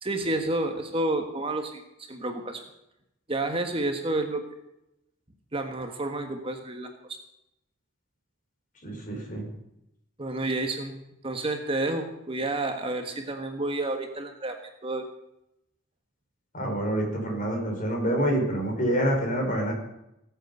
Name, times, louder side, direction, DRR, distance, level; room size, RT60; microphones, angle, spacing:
voice 1, 0.0-1.8 2.1-2.6 3.3-4.4 5.5-6.9 10.2-10.9 11.2-14.6 14.8-15.0, right 2 dB, 25° right, 5 dB, 1.4 m, -30 dB
voice 2, 8.8-9.5 16.5-19.7, right 1 dB, 40° left, 1 dB, 5.0 m, -27 dB
18.0 x 8.2 x 8.0 m, 0.85 s
head